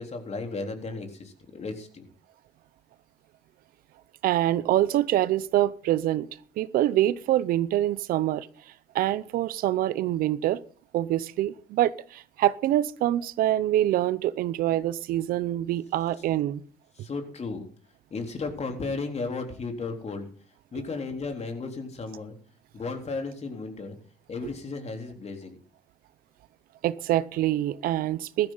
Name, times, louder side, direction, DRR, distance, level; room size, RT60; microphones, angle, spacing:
voice 1, 0.0-2.1 17.0-17.7 18.1-20.3 20.7-22.4 22.7-24.0 24.3-25.6, left 3 dB, 45° left, 3.7 m, -34 dB
voice 2, 4.2-6.3 6.6-8.5 8.9-10.6 10.9-16.6 26.8-28.5, right 13 dB, 80° right, 0.7 m, -25 dB
15.5 x 13.0 x 4.0 m
supercardioid pair, 65°, 15 cm